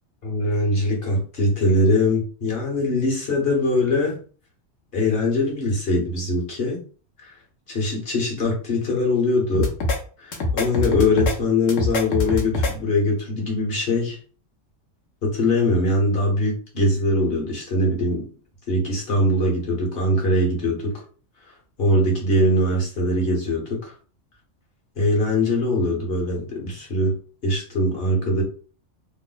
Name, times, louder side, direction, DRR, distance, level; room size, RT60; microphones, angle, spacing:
voice 1, 0.2-4.2 4.9-6.8 7.2-7.3 7.7-9.7 10.2-14.2 15.2-18.3 18.7-20.9 21.8-23.9 25.0-27.1 27.4-28.4, left 1 dB, 55° left, -1 dB, 1.3 m, -22 dB
sound 1, 9.5-10.0 10.3-11.3 11.7-12.7, left 2 dB, 90° left, 1.2 m, -23 dB
3.2 x 2.1 x 3.8 m, 0.40 s
omnidirectional pair, 1.3 m